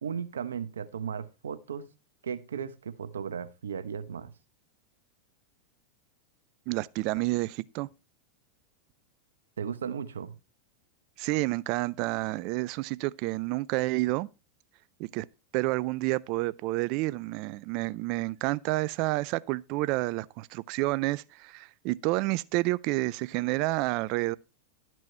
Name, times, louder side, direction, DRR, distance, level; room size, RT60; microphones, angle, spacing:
voice 1, 0.0-1.9 2.2-4.3 9.6-10.4, right 7 dB, 85° right, 0.9 m, -36 dB
voice 2, 6.7-7.9 11.2-14.3 15.0-15.3 15.5-24.4, right 21 dB, 55° right, 0.4 m, -29 dB
12.0 x 6.2 x 4.3 m
hypercardioid pair, 100°, 0 cm